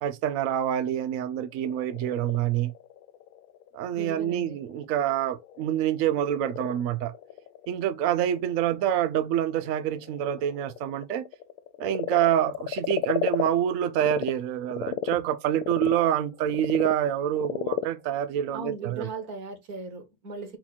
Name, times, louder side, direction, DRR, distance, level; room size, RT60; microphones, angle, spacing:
voice 1, 0.0-2.7 3.7-7.1 7.7-11.3 11.8-19.1, right 11 dB, 80° right, 0.7 m, -26 dB
Frog, 1.4-14.3 14.7-19.3, left 12 dB, 75° left, 0.8 m, -35 dB
voice 2, 4.0-4.5 18.5-20.6, right 3 dB, 55° right, 1.6 m, -37 dB
4.4 x 2.9 x 4.0 m
omnidirectional pair, 2.0 m